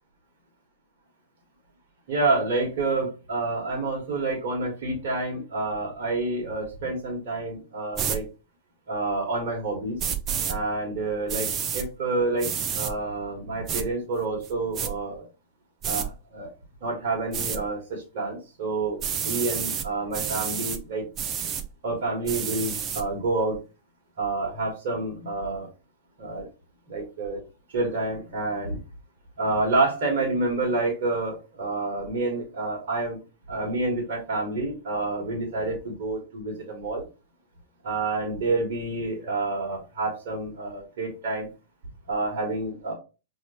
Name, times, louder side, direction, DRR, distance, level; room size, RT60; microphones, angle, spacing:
voice 1, 2.1-8.2 8.9-10.0 10.4-15.2 15.9-16.5 16.8-21.0 21.8-23.6 24.2-25.7 26.2-26.5 26.9-27.4 27.7-28.8 29.4-33.2 33.5-37.0 37.8-41.5 42.1-42.9, right 3 dB, 55° right, 0 dB, 1.5 m, -28 dB
sound 1, 7.9-8.2 10.0-10.6 11.3-11.9 12.4-12.9 13.7-13.8 14.4-14.9 15.8-16.1 17.3-17.6 19.0-19.9 20.1-20.8 21.2-21.6 22.3-23.0, right 8 dB, 30° right, 0.6 m, -29 dB
5.5 x 2.9 x 2.9 m, 0.31 s
figure-of-eight pair, 95°, 0 cm